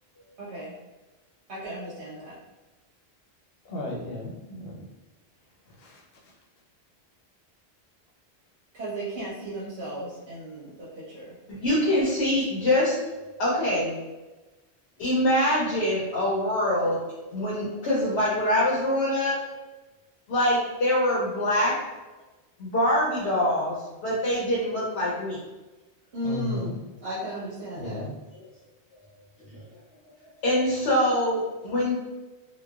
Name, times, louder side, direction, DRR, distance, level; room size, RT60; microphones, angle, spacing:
voice 1, 0.4-0.7 1.5-2.4 8.7-11.3 26.1-28.0, right 1 dB, 85° right, -10 dB, 1.1 m, -35 dB
voice 2, 3.7-4.7 5.8-6.0 26.2-26.7 27.8-28.1, left 1 dB, 65° left, -2 dB, 0.8 m, -34 dB
voice 3, 11.5-14.0 15.0-17.0 17.3-19.4 20.3-21.8 22.6-23.8 24.0-25.4 28.3-28.5 29.5-29.7 30.4-31.9, left 1 dB, 90° left, -7 dB, 1.0 m, -24 dB
3.0 x 2.2 x 2.3 m, 1.1 s
omnidirectional pair, 1.1 m